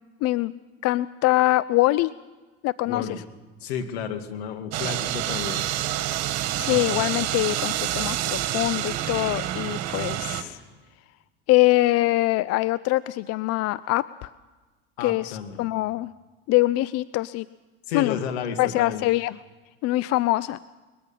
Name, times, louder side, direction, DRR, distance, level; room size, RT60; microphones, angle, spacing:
voice 1, 0.2-0.5 0.8-2.1 2.6-3.2 6.6-10.6 11.5-14.3 15.0-16.1 16.5-17.5 17.9-18.2 18.6-19.4 19.8-20.6, left 17 dB, 50° left, 19 dB, 0.6 m, -23 dB
voice 2, 2.9-3.2 3.6-5.7 6.7-6.9 15.0-15.7 17.9-19.0, left 7 dB, 80° left, 7 dB, 2.3 m, -32 dB
sound 1, 4.7-10.4, right 13 dB, 55° right, 2.1 m, -28 dB
22.0 x 21.0 x 5.7 m, 1.2 s
hypercardioid pair, 85°, 31 cm